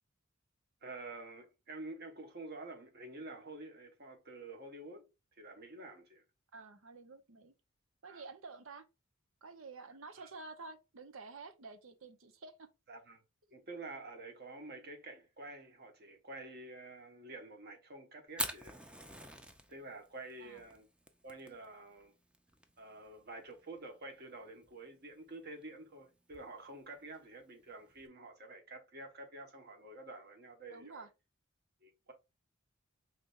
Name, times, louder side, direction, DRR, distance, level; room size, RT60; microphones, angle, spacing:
voice 1, 0.8-5.1 5.4-6.2 8.1-8.2 10.2-10.3 12.9-13.2 13.5-18.8 19.7-20.9 21.2-22.1 22.8-31.1 31.8-32.1, right 2 dB, 50° right, 1.3 m, -49 dB
voice 2, 6.5-7.5 8.0-8.8 9.4-12.7 20.4-20.6 30.7-31.1, right 3 dB, 80° right, 0.8 m, -50 dB
Fire, 18.3-28.1, right 1 dB, 5° right, 0.5 m, -47 dB
5.1 x 3.3 x 2.5 m
head